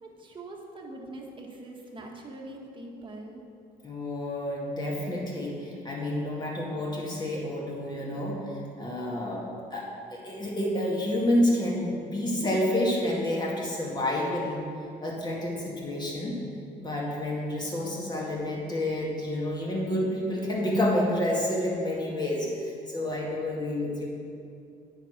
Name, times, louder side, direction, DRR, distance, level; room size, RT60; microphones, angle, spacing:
voice 1, 0.0-3.4, right 2 dB, 30° right, 0 dB, 1.4 m, -43 dB
voice 2, 3.8-14.6 15.0-16.4 16.8-24.1, left 1 dB, 25° left, -3 dB, 2.1 m, -29 dB
9.0 x 4.9 x 5.9 m, 2.5 s
cardioid pair, 110°, 17 cm